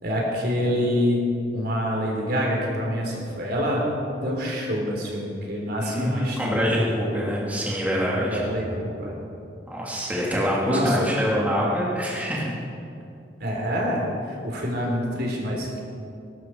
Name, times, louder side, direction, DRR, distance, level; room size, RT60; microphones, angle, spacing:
voice 1, 0.0-1.2 1.5-3.8 4.2-7.2 8.1-9.2 10.6-11.1 13.4-14.0 14.4-15.8, equal, 60° right, -2 dB, 3.7 m, -26 dB
voice 2, 5.8-8.4 9.7-12.5, equal, 10° right, -5 dB, 2.5 m, -25 dB
21.0 x 12.5 x 4.6 m, 2.6 s
head